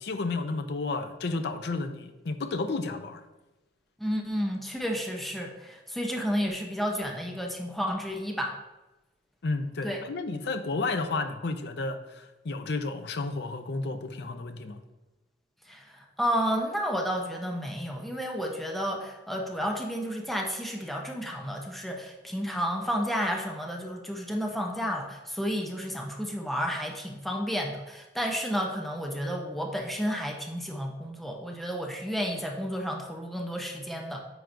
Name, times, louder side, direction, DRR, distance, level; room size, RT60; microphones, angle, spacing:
voice 1, 0.0-3.2 9.4-14.8, left 3 dB, 65° left, 8 dB, 0.5 m, -32 dB
voice 2, 4.0-8.5 9.8-10.0 15.7-34.2, equal, ahead, 0 dB, 0.6 m, -31 dB
9.4 x 4.5 x 2.6 m, 1.1 s
head